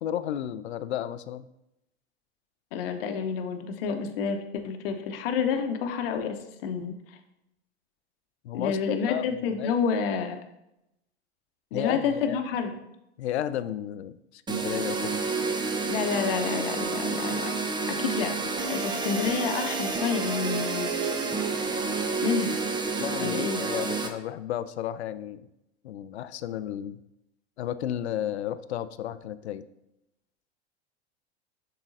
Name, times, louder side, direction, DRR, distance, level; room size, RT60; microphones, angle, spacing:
voice 1, 0.0-1.5 3.9-4.0 8.4-8.8 9.1-9.7 11.7-12.4 13.2-15.2 23.0-25.5 25.8-27.0 27.6-29.6, left 11 dB, 75° left, 13 dB, 0.5 m, -33 dB
voice 2, 2.7-6.9 8.5-10.4 11.7-12.8 15.9-17.5 17.9-18.4 18.7-20.9 22.2-22.5 23.2-23.6, left 6 dB, 60° left, 6 dB, 0.9 m, -29 dB
sound 1, 14.5-24.1, right 4 dB, 15° right, 0.6 m, -29 dB
10.5 x 3.9 x 2.6 m, 0.86 s
figure-of-eight pair, 85°, 33 cm